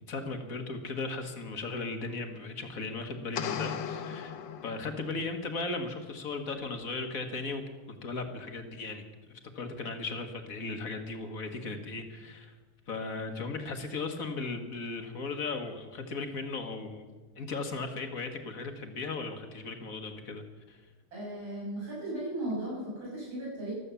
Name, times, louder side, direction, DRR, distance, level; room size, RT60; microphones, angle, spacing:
voice 1, 0.1-4.4 4.6-12.5 12.9-17.1 17.4-20.8, left 3 dB, 45° left, 7 dB, 1.6 m, -37 dB
sound 1, 3.3-5.3, left 8 dB, 70° left, 1.5 m, -37 dB
voice 2, 21.1-23.7, right 1 dB, 75° right, -6 dB, 7.6 m, -36 dB
14.5 x 12.5 x 6.9 m, 1.3 s
omnidirectional pair, 2.3 m